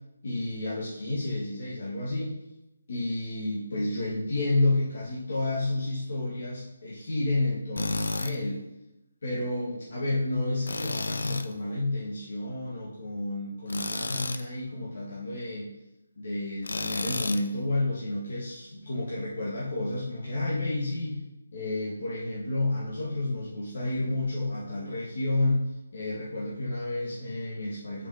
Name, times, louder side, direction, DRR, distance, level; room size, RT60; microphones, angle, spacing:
voice 1, 0.2-2.3 2.9-8.6 9.2-15.7 16.2-21.2 21.5-25.6 25.9-28.1, left 2 dB, 50° left, -6 dB, 1.8 m, -30 dB
Tools, 7.8-8.3 10.7-11.5 13.7-14.4 16.6-17.5, left 3 dB, 75° left, 0.7 m, -32 dB
5.6 x 5.5 x 5.8 m, 0.93 s
hypercardioid pair, 175°, 0 cm